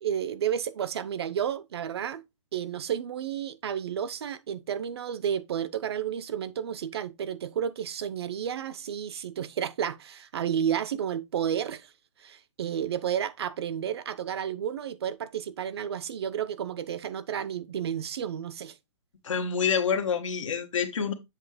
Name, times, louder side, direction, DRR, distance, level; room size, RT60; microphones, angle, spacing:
voice 1, 0.0-2.2 2.5-11.9 12.2-18.7, right 9 dB, 55° right, 0.7 m, -31 dB
voice 2, 19.2-21.1, left 6 dB, 90° left, 1.5 m, -27 dB
7.4 x 2.9 x 4.9 m
hypercardioid pair, 165°, 16 cm